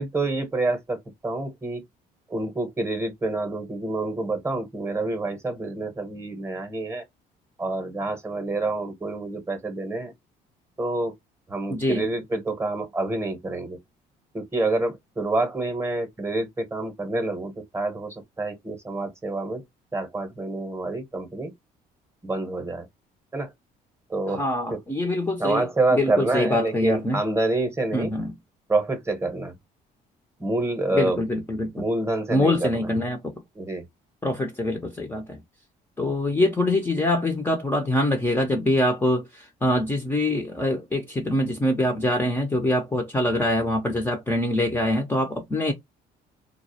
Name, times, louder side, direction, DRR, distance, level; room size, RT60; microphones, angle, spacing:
voice 1, 0.0-1.8 2.3-7.0 7.6-10.1 10.8-11.1 11.5-13.8 14.3-19.6 19.9-21.5 22.2-22.9 23.3-23.5 24.1-24.4 24.7-24.8 25.4-28.1 28.7-29.5 30.4-31.2 31.7-32.9 33.6-33.8, right 2 dB, 15° right, 0.8 m, -27 dB
voice 2, 11.7-12.1 24.3-25.7 25.9-27.2 27.9-28.3 30.9-31.7 32.3-33.3 34.2-35.4 36.0-45.7, left 1 dB, 10° left, 0.4 m, -24 dB
2.3 x 2.0 x 2.6 m
cardioid pair, 110°, 17 cm